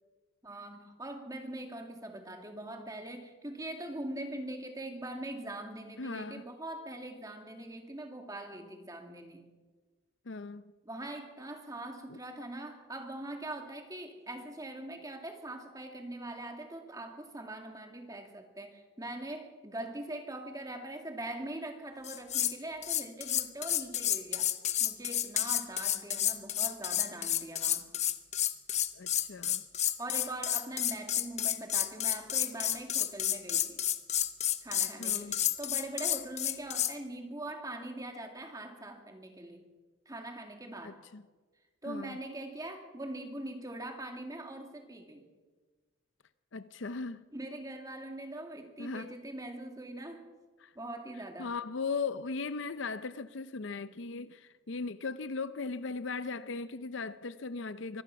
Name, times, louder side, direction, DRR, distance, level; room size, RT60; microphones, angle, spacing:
voice 1, 0.4-9.5 10.8-24.5 24.8-27.9 30.0-33.8 34.6-39.7 40.1-41.0 41.8-45.3 47.3-50.3 50.7-51.5, right 1 dB, 15° right, 2.4 m, -42 dB
voice 2, 6.0-6.4 10.3-10.7 12.1-12.2 29.0-29.6 35.0-35.4 40.8-41.2 41.9-42.2 46.5-47.2 48.8-49.1 50.6-50.7 51.4-58.0, left 4 dB, 65° left, 0.6 m, -38 dB
sound 1, 22.0-22.6 22.8-36.9, left 11 dB, 35° left, 0.8 m, -30 dB
24.0 x 18.0 x 6.0 m
head